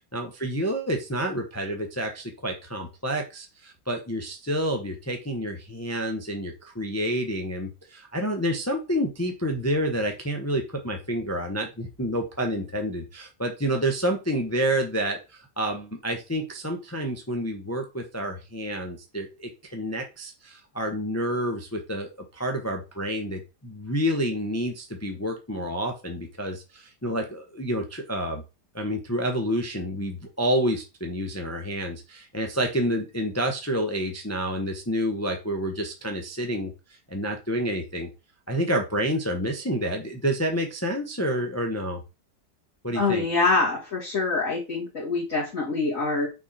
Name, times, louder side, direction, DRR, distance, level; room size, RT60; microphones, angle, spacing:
voice 1, 0.1-28.4 28.7-36.7 37.1-38.1 38.5-42.0 42.8-43.2, equal, 10° left, 3 dB, 0.8 m, -29 dB
voice 2, 42.9-46.3, left 3 dB, 50° left, -7 dB, 2.5 m, -25 dB
6.0 x 4.4 x 4.2 m, 0.28 s
omnidirectional pair, 1.8 m